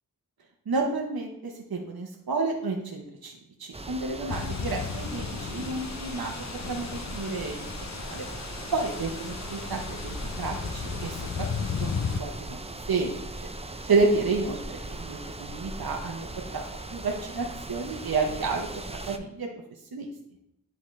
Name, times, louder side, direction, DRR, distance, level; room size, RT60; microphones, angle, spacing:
voice 1, 0.7-6.3 6.6-7.6 7.9-8.3 8.7-11.5 11.8-12.6 12.9-13.1 13.9-16.3 16.5-16.6 16.9-18.7 19.1-19.5 19.9-20.1, right 3 dB, 80° right, 1 dB, 0.9 m, -30 dB
sound 1, 3.7-19.2, right 2 dB, 15° right, 0.5 m, -39 dB
sound 2, 4.3-12.2, left 6 dB, 50° left, 0.5 m, -35 dB
10.5 x 3.8 x 3.2 m, 0.79 s
wide cardioid pair, 45°, 36 cm